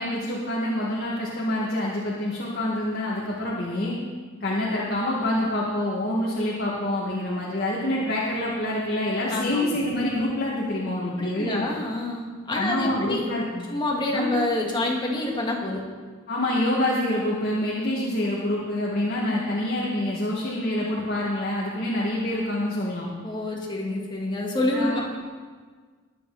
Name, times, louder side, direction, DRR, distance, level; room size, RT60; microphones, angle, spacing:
voice 1, 0.0-3.9 4.4-11.7 12.5-13.7 14.1-14.3 16.3-23.1 24.7-25.0, left 1 dB, 50° left, -6 dB, 2.2 m, -26 dB
voice 2, 9.3-9.6 11.2-13.3 13.7-15.8 23.2-25.0, left 2 dB, 20° left, -1 dB, 2.1 m, -27 dB
22.0 x 8.2 x 4.2 m, 1.5 s
head